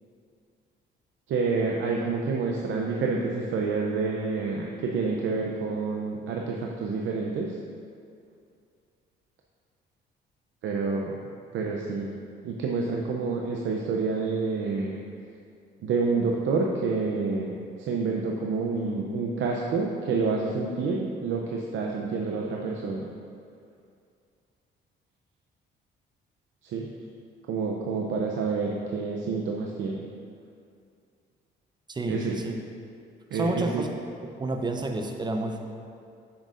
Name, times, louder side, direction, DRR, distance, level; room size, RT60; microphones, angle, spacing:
voice 1, 1.3-7.6 10.6-11.1 11.5-12.1 12.4-15.0 15.8-23.1 26.6-26.9 27.5-30.1 32.1-32.3 33.3-33.8, right 4 dB, 75° right, 0 dB, 0.6 m, -28 dB
voice 2, 31.9-32.6 33.3-33.9 34.4-35.6, right 2 dB, 20° right, 4 dB, 0.7 m, -29 dB
8.3 x 6.3 x 2.5 m, 2.4 s
cardioid pair, 90°, 20 cm